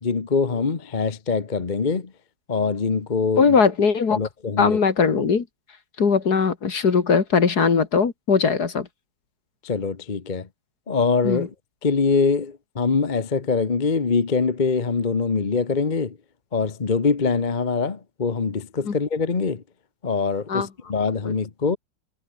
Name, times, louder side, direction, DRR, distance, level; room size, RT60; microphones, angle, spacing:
voice 1, 0.0-2.1 2.5-3.5 4.1-4.8 9.6-10.5 10.9-11.5 11.8-16.2 16.5-19.6 20.0-21.8, left 5 dB, 30° left, 1.2 m, -23 dB
voice 2, 3.4-4.2 4.6-5.4 6.0-8.9 11.2-11.5 18.9-19.0 20.5-20.7 21.3-21.4, left 5 dB, 60° left, 2.6 m, -20 dB
omnidirectional pair, 2.0 m